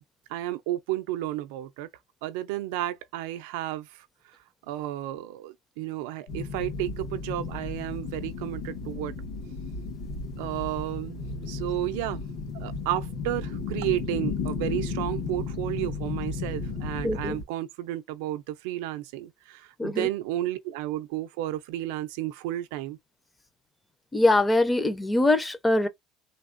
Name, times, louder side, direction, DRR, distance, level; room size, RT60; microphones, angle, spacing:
voice 1, 0.3-1.9 2.2-4.1 4.7-9.1 10.4-11.2 11.5-12.2 12.5-23.0, right 14 dB, 90° right, 0.4 m, -32 dB
sound 1, 6.3-17.4, left 4 dB, 80° left, 1.7 m, -34 dB
voice 2, 17.0-17.4 19.8-20.1 24.1-25.9, left 2 dB, 10° left, 0.4 m, -23 dB
3.3 x 2.2 x 2.5 m
cardioid pair, 155°, 0 cm